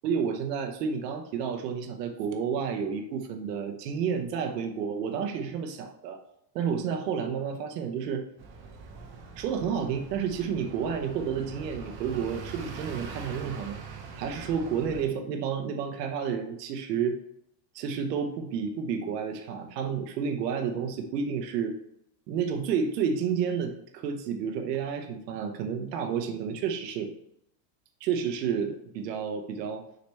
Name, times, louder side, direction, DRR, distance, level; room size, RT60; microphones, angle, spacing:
voice 1, 0.0-6.2 6.5-8.2 9.4-13.8 14.1-17.2 17.7-21.7 22.3-27.1 28.0-29.8, right 7 dB, 90° right, 5 dB, 0.9 m, -30 dB
sound 1, 8.4-15.0, right 5 dB, 25° right, 0.7 m, -43 dB
6.5 x 3.4 x 4.2 m, 0.75 s
supercardioid pair, 160°, 48 cm